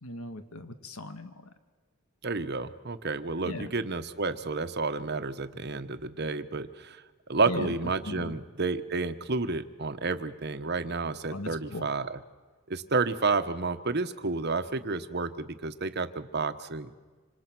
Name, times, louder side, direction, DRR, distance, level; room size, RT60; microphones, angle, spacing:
voice 1, 0.0-1.5 3.4-3.7 7.5-7.7 8.0-8.3 11.3-11.9, left 1 dB, 85° left, 9 dB, 1.7 m, -38 dB
voice 2, 2.2-7.0 7.3-12.2 12.7-16.9, right 3 dB, 50° right, 9 dB, 1.2 m, -30 dB
27.0 x 26.5 x 6.2 m, 1.4 s
head